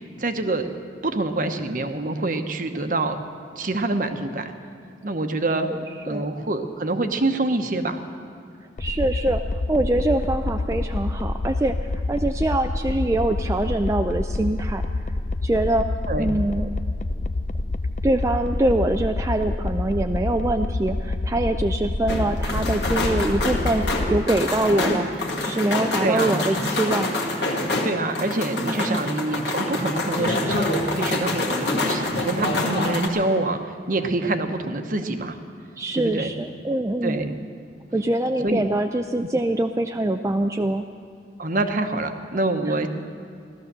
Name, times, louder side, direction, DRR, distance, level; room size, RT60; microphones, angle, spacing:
voice 1, 0.2-0.7 1.0-3.2 3.6-4.5 5.0-5.7 6.0-8.0 16.1-16.3 26.0-26.4 27.8-35.4 35.9-36.3 37.0-37.3 38.4-38.6 41.4-42.9, right 2 dB, 50° right, 7 dB, 1.0 m, -26 dB
sound 1, 8.8-24.3, left 2 dB, 45° left, 0.5 m, -27 dB
voice 2, 8.8-9.4 9.7-11.8 12.1-14.8 15.4-15.9 16.2-16.7 18.0-27.1 28.6-29.0 35.8-37.2 37.9-40.9, right 1 dB, 15° right, 5 dB, 0.4 m, -24 dB
sound 2, 22.1-33.1, left 2 dB, 75° left, 1.9 m, -26 dB
16.5 x 13.0 x 6.7 m, 2.4 s
head